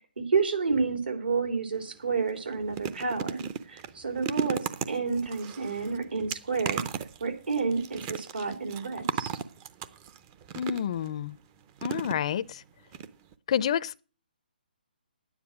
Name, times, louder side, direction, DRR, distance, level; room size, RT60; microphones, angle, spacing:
voice 1, 0.0-4.6 4.9-6.8 7.2-9.3, right 4 dB, 75° right, 3.6 m, -30 dB
sound 1, 1.7-1.9 2.3-11.1 11.8-12.6 12.9-13.1 13.3-13.4, right 7 dB, 20° right, 0.6 m, -36 dB
voice 2, 10.6-11.4 11.8-12.6 13.5-14.0, left 9 dB, 35° left, 0.5 m, -29 dB
10.0 x 9.7 x 6.1 m
hypercardioid pair, 160°, 5 cm